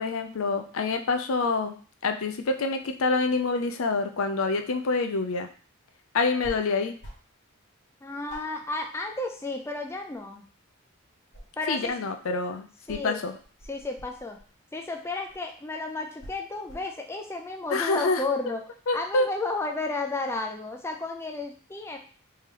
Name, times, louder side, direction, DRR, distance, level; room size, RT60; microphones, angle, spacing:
voice 1, 0.0-1.7 2.0-5.5 6.1-6.9 11.7-13.3 17.7-18.2 18.9-19.3, left 3 dB, 75° left, 7 dB, 0.5 m, -26 dB
sound 1, 6.4-6.6 7.0-7.4 7.7-7.8 8.3-9.6 9.9-10.8 11.1-12.1 12.9-14.5 15.3-15.5 16.1-17.0, equal, 55° left, 1.5 m, -46 dB
voice 2, 8.0-10.5 11.6-11.9 12.9-13.2 13.7-14.4 14.7-18.6 18.9-22.0, left 3 dB, 10° left, 3 dB, 0.3 m, -32 dB
3.3 x 2.9 x 3.6 m, 0.41 s
head